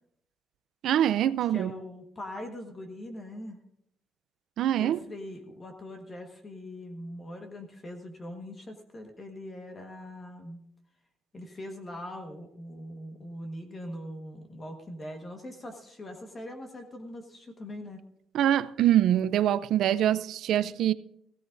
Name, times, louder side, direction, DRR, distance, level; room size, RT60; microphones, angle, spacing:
voice 1, 0.8-1.7 4.6-5.0 18.3-20.9, right 11 dB, 60° right, 0.4 m, -24 dB
voice 2, 1.5-3.6 4.8-10.6 11.3-18.0, left 1 dB, 25° left, 1.3 m, -42 dB
16.5 x 16.0 x 2.6 m
cardioid pair, 155°, 0 cm